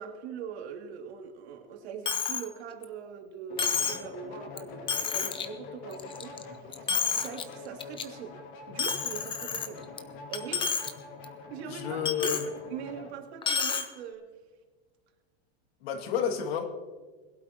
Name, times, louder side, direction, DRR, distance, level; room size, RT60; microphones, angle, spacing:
voice 1, 0.0-8.4 8.7-9.9 10.3-11.0 11.5-12.4 12.7-14.3, right 7 dB, 80° right, 2.9 m, -42 dB
Coin (dropping), 2.1-2.5 2.8-2.9 3.6-4.1 4.6-4.7 4.9-5.5 5.9-6.4 6.7-7.4 7.8-8.0 8.8-10.0 10.3-10.9 11.2-11.3 12.1-12.5 13.4-13.9, left 6 dB, 15° left, 0.8 m, -30 dB
sound 1, 3.5-13.1, left 4 dB, 45° left, 2.4 m, -45 dB
voice 2, 11.7-12.4 15.8-16.6, left 8 dB, 70° left, 2.5 m, -30 dB
21.5 x 12.0 x 3.0 m
supercardioid pair, 150°, 32 cm